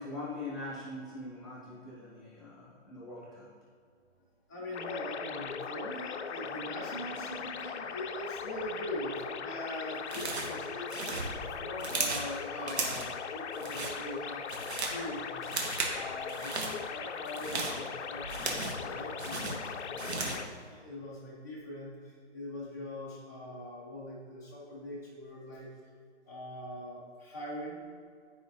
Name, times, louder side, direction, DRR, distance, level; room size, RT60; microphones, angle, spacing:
voice 1, 0.0-3.5, left 2 dB, ahead, -8 dB, 1.3 m, -42 dB
voice 2, 4.5-15.5 15.9-25.7 26.2-27.8, left 1 dB, 15° left, -9 dB, 0.4 m, -42 dB
sound 1, 4.7-20.5, left 6 dB, 70° left, 0.6 m, -39 dB
sound 2, 10.1-10.6 10.9-12.3 12.7-13.1 13.5-14.0 14.3-15.0 15.4-16.0 16.3-16.7 17.2-18.9 19.2-20.5, right 3 dB, 65° right, 1.2 m, -35 dB
9.8 x 4.9 x 2.6 m, 2.1 s
hypercardioid pair, 165°, 35 cm